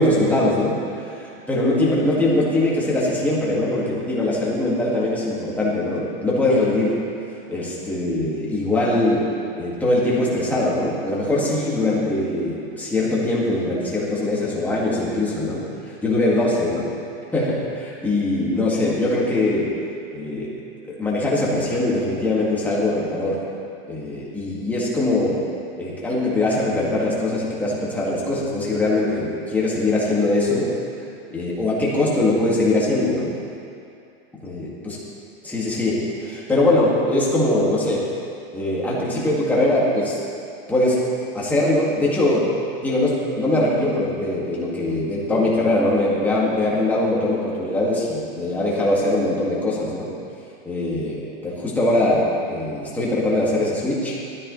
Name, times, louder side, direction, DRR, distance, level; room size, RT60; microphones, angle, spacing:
voice 1, 0.0-7.0 7.5-16.9 17.3-19.7 20.1-20.5 20.9-23.4 23.9-25.4 25.8-30.7 31.3-33.3 34.3-35.0 35.4-38.1 38.5-40.2 40.7-41.1 41.3-42.5 42.8-50.1 50.7-54.2, left 1 dB, 5° left, -6 dB, 2.0 m, -22 dB
16.0 x 13.0 x 3.2 m, 2.6 s
supercardioid pair, 165°, 30 cm